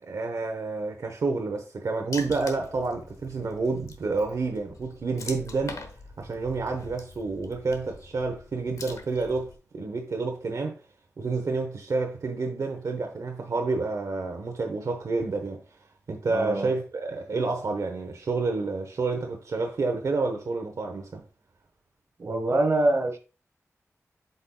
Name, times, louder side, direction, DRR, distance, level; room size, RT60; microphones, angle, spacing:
voice 1, 0.0-5.8 6.2-10.8 11.2-15.6 16.1-21.2, right 3 dB, 80° right, 1.0 m, -29 dB
Water / Splash splatter, 2.1-9.6, left 3 dB, 90° left, 1.0 m, -44 dB
voice 2, 16.3-16.7 22.2-23.2, right 2 dB, 55° right, 1.3 m, -24 dB
7.9 x 5.4 x 2.3 m
wide cardioid pair, 105°, 5 cm